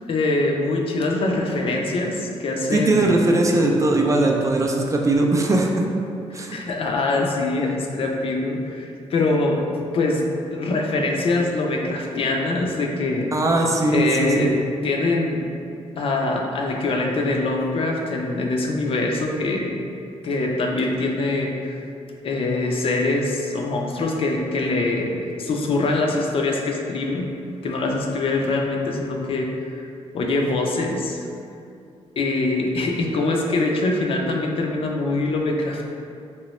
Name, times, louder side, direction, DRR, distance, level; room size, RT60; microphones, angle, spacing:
voice 1, 0.1-3.2 6.3-13.3 13.9-14.6 14.8-15.5 16.0-19.8 20.2-21.8 22.2-27.3 27.6-29.9 30.1-31.2 32.2-35.9, left 2 dB, 55° left, 0 dB, 0.4 m, -23 dB
voice 2, 2.7-5.8 6.3-6.6 13.3-14.5, right 2 dB, 25° right, 0 dB, 0.3 m, -20 dB
3.0 x 2.9 x 3.0 m, 2.5 s
cardioid pair, 105°, 11 cm